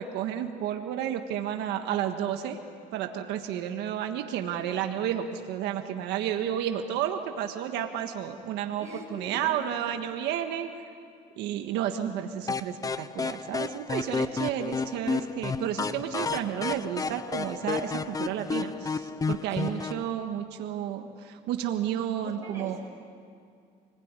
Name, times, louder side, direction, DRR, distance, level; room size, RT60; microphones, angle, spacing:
voice 1, 0.0-2.6 2.9-8.8 9.1-10.7 11.4-22.8, right 10 dB, 90° right, 5 dB, 1.6 m, -31 dB
voice 2, 8.7-9.7 19.5-19.9 22.2-22.8, right 1 dB, 15° right, -3 dB, 7.7 m, -43 dB
sound 1, 12.5-20.0, left 4 dB, 20° left, 0.7 m, -32 dB
28.5 x 21.0 x 9.8 m, 2.3 s
cardioid pair, 110°, 17 cm